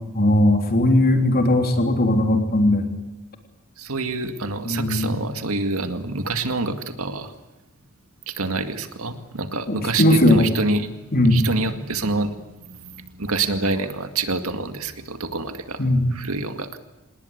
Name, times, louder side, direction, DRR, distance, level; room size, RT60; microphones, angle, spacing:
voice 1, 0.1-2.9 4.6-5.1 10.0-10.5 11.1-11.4 15.8-16.0, left 1 dB, 45° left, 5 dB, 3.3 m, -18 dB
voice 2, 3.8-7.3 8.3-15.8 16.1-16.8, right 3 dB, 70° right, 8 dB, 2.1 m, -27 dB
28.0 x 20.0 x 8.2 m, 1.0 s
head